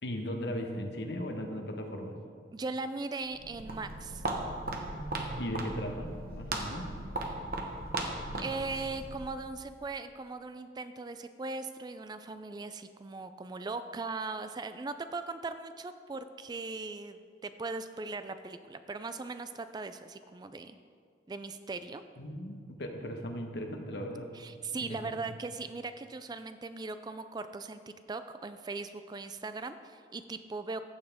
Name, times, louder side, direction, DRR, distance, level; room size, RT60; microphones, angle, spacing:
voice 1, 0.0-2.2 5.4-6.9 22.2-24.3 24.8-25.0, equal, 65° left, 4 dB, 1.1 m, -37 dB
voice 2, 2.5-4.2 8.4-20.8 21.3-22.0 24.3-30.8, right 3 dB, 25° right, 10 dB, 0.3 m, -39 dB
Walk footsteps, 3.2-9.4, right 2 dB, 55° right, 1.1 m, -37 dB
15.0 x 7.2 x 3.5 m, 2.1 s
head